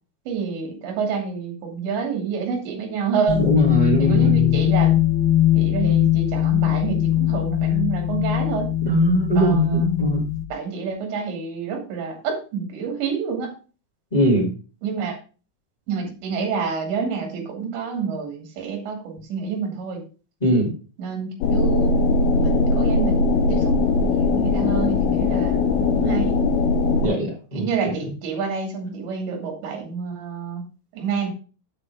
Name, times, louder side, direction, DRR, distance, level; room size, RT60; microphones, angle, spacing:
voice 1, 0.3-3.5 4.0-5.0 5.5-8.7 9.4-9.8 10.5-13.6 14.8-15.2 15.9-20.0 21.0-22.0 22.4-26.4 27.5-30.6 30.9-31.3, right 6 dB, 65° right, 2 dB, 4.6 m, -28 dB
sound 1, 3.3-10.4, left 13 dB, 85° left, 2.3 m, -20 dB
voice 2, 3.4-4.6 8.8-10.3 14.1-14.5 20.4-20.7 27.0-27.9, equal, 25° left, -2 dB, 0.8 m, -21 dB
sound 2, 21.4-27.1, left 3 dB, 70° left, 2.6 m, -20 dB
8.4 x 7.0 x 4.8 m, 0.36 s
omnidirectional pair, 5.6 m